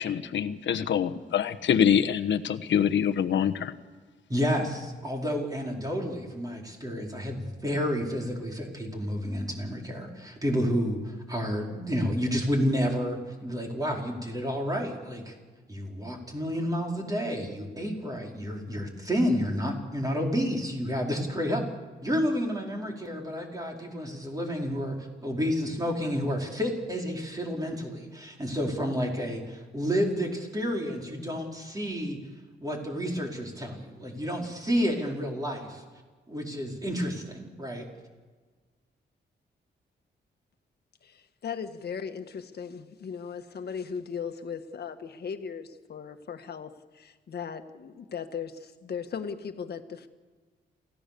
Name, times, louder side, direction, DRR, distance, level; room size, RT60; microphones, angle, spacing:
voice 1, 0.0-3.7, left 8 dB, 80° left, 8 dB, 1.2 m, -25 dB
voice 2, 4.3-15.3 15.7-21.6 22.0-32.2 32.6-35.8 36.3-37.9, equal, 20° right, 0 dB, 4.8 m, -30 dB
voice 3, 41.0-50.1, left 6 dB, 60° left, 7 dB, 1.7 m, -38 dB
28.5 x 16.5 x 7.0 m, 1.4 s
wide cardioid pair, 120°, 19 cm